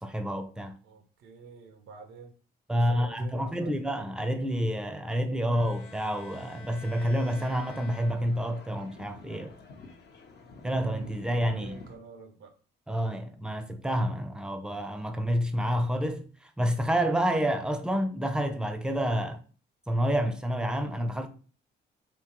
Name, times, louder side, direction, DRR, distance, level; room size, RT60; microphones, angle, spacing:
voice 1, 0.0-0.7 2.7-9.6 10.6-11.7 12.9-19.4 19.9-21.3, equal, 5° right, 0.5 m, -29 dB
voice 2, 0.8-2.3 2.7-3.8 11.4-12.5, right 4 dB, 90° right, 0.6 m, -47 dB
Bowed string instrument, 5.5-8.7, left 4 dB, 85° left, 1.2 m, -49 dB
sound 1, 5.7-11.9, left 4 dB, 60° left, 0.7 m, -50 dB
3.7 x 2.7 x 2.9 m
cardioid pair, 90°, 20 cm